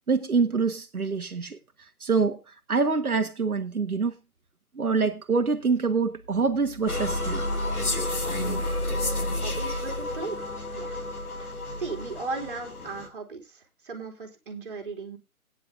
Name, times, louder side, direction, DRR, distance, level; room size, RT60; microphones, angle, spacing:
voice 1, 0.1-4.1 4.7-7.4 8.7-8.8, right 4 dB, 80° right, 1.5 m, -26 dB
sound 1, 6.9-13.1, left 1 dB, 80° left, 3.0 m, -30 dB
voice 2, 9.4-10.4 10.7-11.0 11.8-15.2, right 4 dB, 35° right, 2.9 m, -36 dB
17.5 x 9.9 x 2.6 m
figure-of-eight pair, 160°, 43 cm